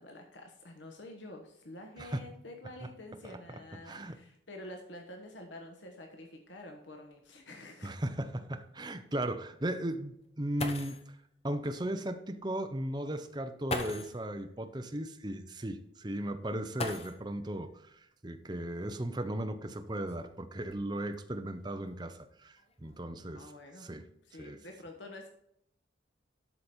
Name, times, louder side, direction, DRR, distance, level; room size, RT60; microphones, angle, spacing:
voice 1, 0.0-7.9 23.3-23.9 24.2-25.3, left 1 dB, 75° left, 2 dB, 1.3 m, -48 dB
voice 2, 3.8-4.2 7.8-11.0 11.4-18.0 18.2-23.5 23.8-24.1 24.4-24.6, right 1 dB, 25° right, 7 dB, 0.7 m, -36 dB
sound 1, 7.2-7.3 7.9-8.0 10.2-10.3 10.6-11.1 12.4-12.5 13.6-14.2 16.7-17.5 18.9-19.0 19.7-21.1 21.8-22.2 22.6-23.0, left 2 dB, 35° left, 1.0 m, -40 dB
12.5 x 5.1 x 4.4 m, 0.76 s
head